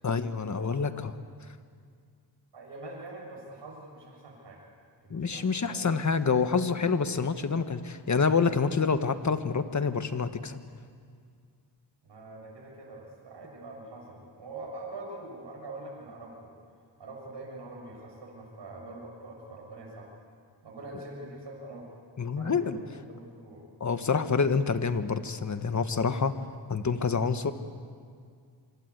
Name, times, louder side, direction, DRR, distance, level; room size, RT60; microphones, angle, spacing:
voice 1, 0.0-1.1 5.1-10.6 22.2-22.8 23.8-26.3 26.7-27.5, left 5 dB, 40° left, 9 dB, 1.6 m, -27 dB
voice 2, 2.5-4.6 5.0-5.8 12.0-16.5 17.0-20.1 20.6-21.9 22.3-23.6, right 2 dB, 80° right, -1 dB, 6.9 m, -44 dB
26.0 x 25.0 x 8.3 m, 2.1 s
wide cardioid pair, 90°, 42 cm